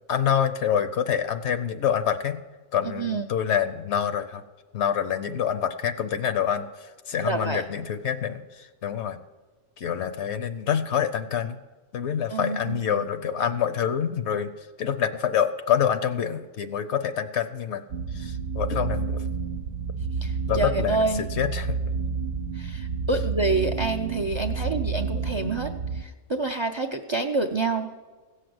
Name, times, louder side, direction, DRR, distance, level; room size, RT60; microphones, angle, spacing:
voice 1, 0.1-2.4 2.7-4.4 4.7-9.2 9.8-11.6 11.9-14.5 14.8-17.8 18.1-19.2 20.5-21.8, left 8 dB, 65° left, 11 dB, 0.9 m, -26 dB
voice 2, 7.2-7.6 12.3-13.1 20.2-21.3 22.5-27.9, right 3 dB, 45° right, 7 dB, 0.3 m, -28 dB
sound 1, 17.9-26.0, right 5 dB, 70° right, 0.9 m, -30 dB
16.0 x 6.6 x 7.8 m, 1.3 s
omnidirectional pair, 1.3 m